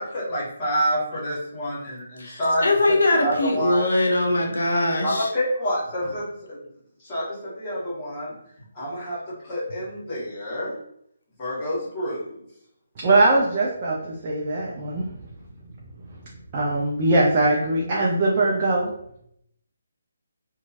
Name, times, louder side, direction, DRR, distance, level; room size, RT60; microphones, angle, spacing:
voice 1, 0.0-2.6 3.1-3.9 5.0-6.6 7.0-8.3 8.7-10.7 11.4-12.4, equal, 25° left, -6 dB, 1.3 m, -28 dB
voice 2, 2.2-5.3, left 2 dB, 65° left, 0 dB, 0.6 m, -21 dB
voice 3, 13.0-15.1 16.5-18.9, right 2 dB, 30° right, -4 dB, 0.5 m, -21 dB
2.9 x 2.2 x 2.7 m, 0.73 s
figure-of-eight pair, 145°, 0 cm